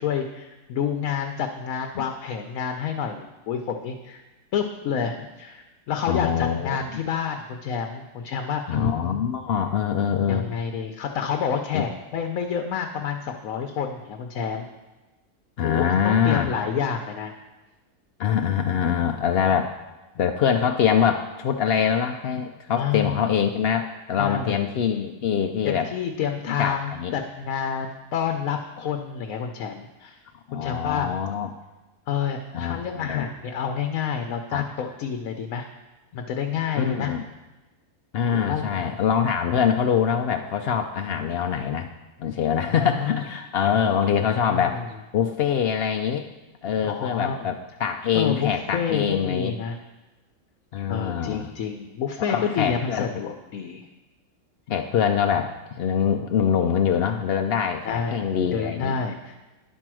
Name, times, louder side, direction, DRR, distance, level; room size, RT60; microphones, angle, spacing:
voice 1, 0.0-4.2 4.5-9.2 10.3-14.7 15.6-17.3 22.8-23.2 24.2-24.6 25.6-30.2 30.5-31.2 32.1-35.7 36.1-37.1 38.3-39.0 42.5-43.2 44.4-44.9 46.8-47.5 48.1-49.8 50.9-53.8 57.8-59.4, left 7 dB, 70° left, 5 dB, 1.0 m, -29 dB
voice 2, 6.1-6.8 8.7-10.5 11.7-11.9 15.6-16.5 18.2-19.7 20.2-25.9 26.5-27.1 30.5-31.5 32.5-33.3 34.5-34.6 36.8-37.3 38.1-41.9 42.2-44.8 45.1-46.2 46.6-49.5 50.7-51.5 52.3-53.0 54.7-55.5 55.8-59.0, left 8 dB, 85° left, 4 dB, 0.5 m, -24 dB
10.5 x 4.5 x 6.1 m, 1.1 s
omnidirectional pair, 1.6 m